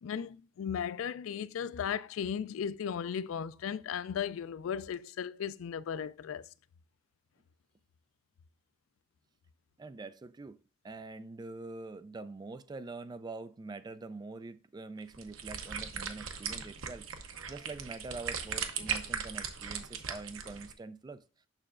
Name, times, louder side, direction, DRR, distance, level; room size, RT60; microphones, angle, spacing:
voice 1, 0.0-6.5, left 8 dB, 75° left, 0.3 m, -36 dB
voice 2, 9.8-10.6 10.8-17.1 17.5-21.2, right 3 dB, 20° right, 0.3 m, -44 dB
sound 1, 15.0-20.7, right 7 dB, 80° right, 0.8 m, -38 dB
6.6 x 6.1 x 2.4 m
head